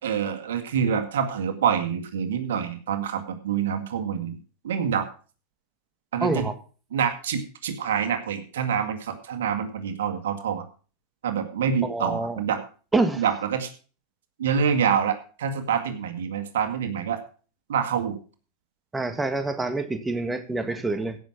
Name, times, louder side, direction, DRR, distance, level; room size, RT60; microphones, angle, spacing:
voice 1, 0.0-4.4 4.6-5.1 6.1-6.5 6.9-10.6 11.2-12.6 13.2-13.7 14.4-17.2 17.7-18.2, right 7 dB, 80° right, 7 dB, 2.0 m, -26 dB
voice 2, 6.2-6.5 11.8-12.4 12.9-13.2 18.9-21.2, right 3 dB, 10° right, 8 dB, 1.7 m, -26 dB
16.0 x 6.3 x 5.9 m, 0.38 s
hypercardioid pair, 105°, 0 cm